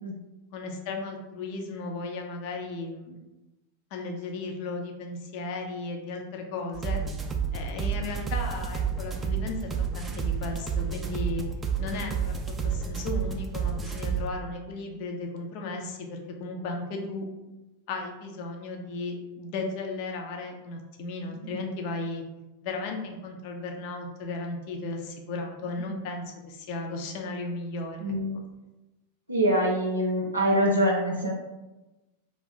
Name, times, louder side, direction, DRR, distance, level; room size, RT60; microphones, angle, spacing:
voice 1, 0.5-3.2 3.9-7.0 7.5-9.6 9.9-11.4 11.8-12.3 12.6-17.3 17.9-22.2 22.6-28.1, left 3 dB, 45° left, 3 dB, 0.5 m, -35 dB
sound 1, 6.7-14.3, right 6 dB, 15° right, 0.3 m, -30 dB
voice 2, 28.0-28.4 29.3-31.3, equal, 85° right, -4 dB, 0.5 m, -24 dB
2.5 x 2.5 x 3.7 m, 1.1 s
figure-of-eight pair, 90°, 0 cm